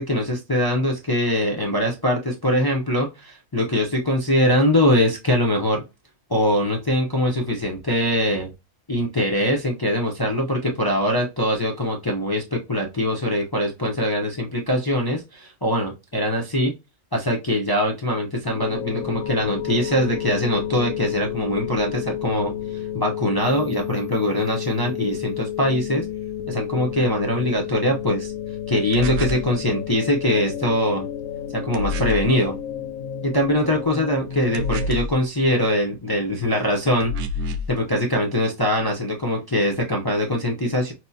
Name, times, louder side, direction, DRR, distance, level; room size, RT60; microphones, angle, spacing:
voice 1, 0.0-5.8 6.3-8.5 8.9-16.7 17.1-22.5 22.9-26.1 26.5-28.3 28.7-31.1 31.5-32.5 33.2-37.1 37.7-40.9, left 1 dB, 25° left, 0 dB, 0.5 m, -22 dB
sound 1, 18.5-34.9, left 10 dB, 75° left, 0.9 m, -31 dB
sound 2, 28.9-29.5 31.7-32.3 34.5-35.2 37.0-37.7, left 2 dB, 65° right, 0.8 m, -27 dB
6.0 x 2.0 x 2.7 m, 0.25 s
omnidirectional pair, 1.4 m